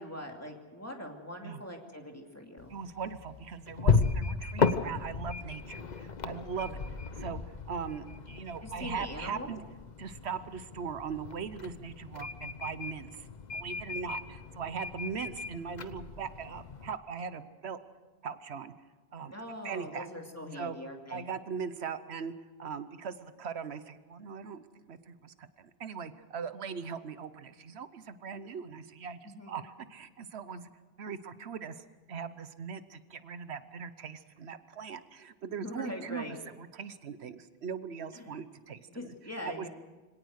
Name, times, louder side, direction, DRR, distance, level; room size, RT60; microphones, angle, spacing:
voice 1, 0.0-2.7 6.5-6.8 8.6-9.6 19.3-21.2 29.2-29.6 35.6-36.4 38.1-38.3 38.9-39.7, left 1 dB, 15° left, 2 dB, 2.5 m, -42 dB
sound 1, 2.6-17.0, left 5 dB, 45° left, 1.0 m, -35 dB
voice 2, 2.7-6.8 7.2-7.4 7.7-9.6 10.0-17.8 18.2-18.7 19.1-19.3 19.6-20.1 20.5-20.8 21.1-22.3 22.6-30.7 31.0-39.1 39.4-39.7, right 6 dB, 85° right, 12 dB, 1.2 m, -40 dB
25.0 x 17.5 x 6.5 m, 1.2 s
omnidirectional pair, 1.1 m